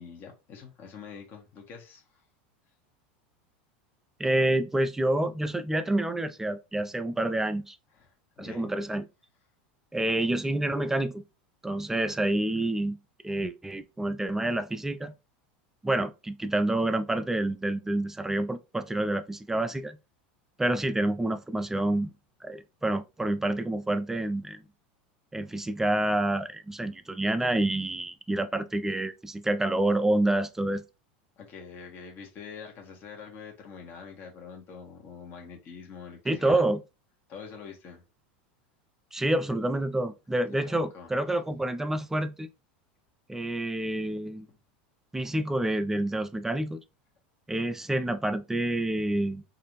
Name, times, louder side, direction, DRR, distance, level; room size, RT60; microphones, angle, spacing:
voice 1, 0.0-2.1 7.9-8.6 31.4-36.6 37.3-38.0 40.5-41.1, left 6 dB, 45° left, 1.4 m, -45 dB
voice 2, 4.2-7.8 8.4-9.1 9.9-11.2 11.6-13.0 13.2-15.2 15.8-20.0 20.6-22.1 22.4-24.6 25.3-30.8 36.3-36.8 39.1-42.5 43.3-44.5 45.1-46.8 47.5-49.4, right 1 dB, 10° right, 0.4 m, -28 dB
4.0 x 2.7 x 3.1 m
hypercardioid pair, 110°, 5 cm